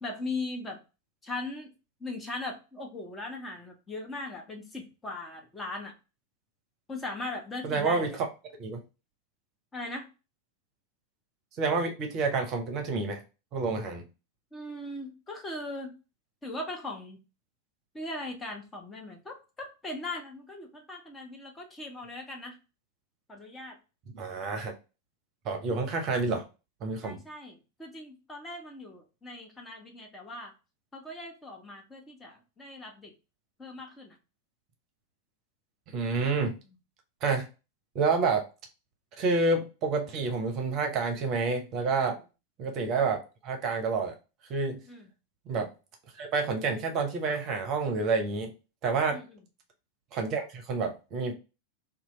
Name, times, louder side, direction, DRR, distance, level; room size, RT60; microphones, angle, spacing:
voice 1, 0.0-0.8 1.2-1.7 2.0-5.9 6.9-8.2 9.7-10.1 14.5-16.0 16.4-17.2 17.9-22.6 23.3-23.8 27.0-30.5 30.9-33.1 33.6-34.2 42.0-42.2 44.9-45.1 49.1-49.3, left 2 dB, 15° left, 2 dB, 0.6 m, -39 dB
voice 2, 7.6-8.3 8.6-8.8 11.6-13.2 13.5-14.0 24.1-24.7 25.4-26.4 26.8-27.2 35.9-36.6 37.2-37.5 37.9-38.5 39.2-42.2 42.6-44.1 44.5-44.8 45.5-45.7 46.2-48.5 48.8-49.2 50.1-51.3, right 4 dB, 35° right, 4 dB, 0.7 m, -28 dB
2.8 x 2.3 x 2.9 m, 0.30 s
figure-of-eight pair, 90°, 0 cm